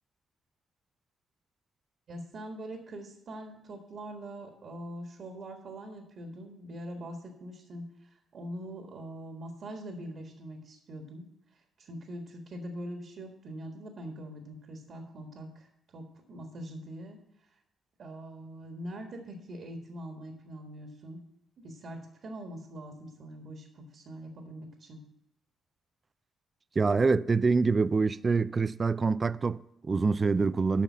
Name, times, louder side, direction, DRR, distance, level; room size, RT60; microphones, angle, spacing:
voice 1, 2.1-11.2 11.8-17.2 18.0-21.2 21.6-25.0, right 1 dB, 60° right, 1.5 m, -43 dB
voice 2, 26.8-30.8, right 4 dB, 35° right, 0.4 m, -26 dB
8.6 x 5.5 x 7.2 m
hypercardioid pair, 50°, 0 cm